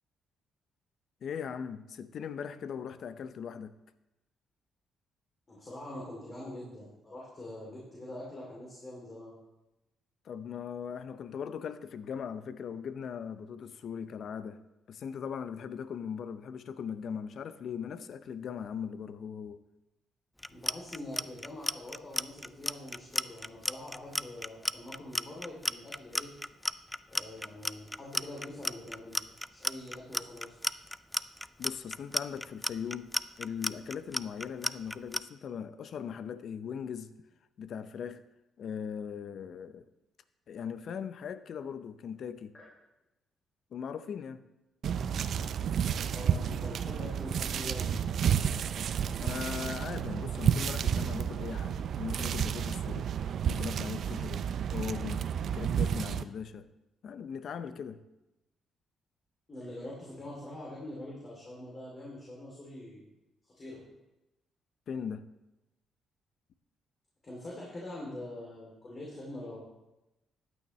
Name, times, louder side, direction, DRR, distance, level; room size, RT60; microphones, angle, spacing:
voice 1, 1.2-3.8 10.2-14.6 14.9-19.6 31.6-33.1 33.4-37.1 37.6-38.2 38.6-39.9 40.5-42.5 43.7-44.4 49.2-53.1 53.5-56.7 57.0-58.0 64.9-65.3, left 7 dB, 60° left, 0.6 m, -39 dB
voice 2, 5.5-9.4 20.5-26.3 27.1-29.2 29.5-30.6 42.5-42.7 46.0-48.0 59.5-63.1 63.4-63.8 67.2-69.6, left 1 dB, 35° left, 2.9 m, -44 dB
Clock, 20.4-35.2, left 1 dB, 10° left, 0.3 m, -33 dB
sound 1, 44.8-56.2, right 8 dB, 65° right, 0.4 m, -31 dB
14.0 x 9.4 x 3.1 m
cardioid pair, 90°, 0 cm